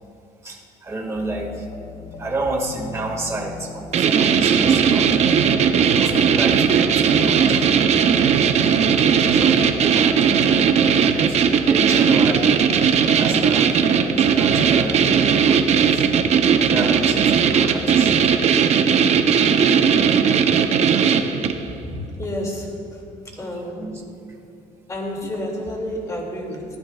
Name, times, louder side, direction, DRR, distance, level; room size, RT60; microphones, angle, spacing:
voice 1, 0.4-5.2 6.0-7.7 9.3-10.6 11.0-12.6 13.0-16.1 16.6-18.3 23.3-24.0 24.3-24.4 25.2-25.3, right 2 dB, 20° right, -1 dB, 1.9 m, -31 dB
sound 1, 1.1-18.4, left 4 dB, 40° left, 1.3 m, -38 dB
sound 2, 3.9-21.7, right 7 dB, 50° right, 0.7 m, -17 dB
voice 2, 21.8-23.0 23.4-23.9 24.9-26.7, left 1 dB, 20° left, -1 dB, 2.4 m, -30 dB
19.0 x 15.5 x 2.4 m, 2.5 s
cardioid pair, 145°, 15 cm